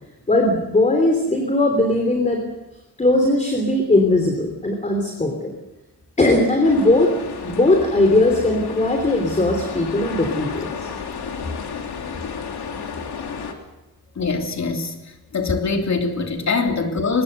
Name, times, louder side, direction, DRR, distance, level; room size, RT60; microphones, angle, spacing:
voice 1, 0.3-2.4 3.0-5.5 6.2-7.1 7.4-10.9, left 2 dB, 20° left, 3.3 m, -19 dB
sound 1, 6.6-13.5, left 6 dB, 80° left, 3.2 m, -32 dB
voice 2, 14.2-15.0 15.3-17.2, left 4 dB, 45° left, 3.2 m, -23 dB
24.0 x 21.0 x 6.8 m
wide cardioid pair, 155°, 38 cm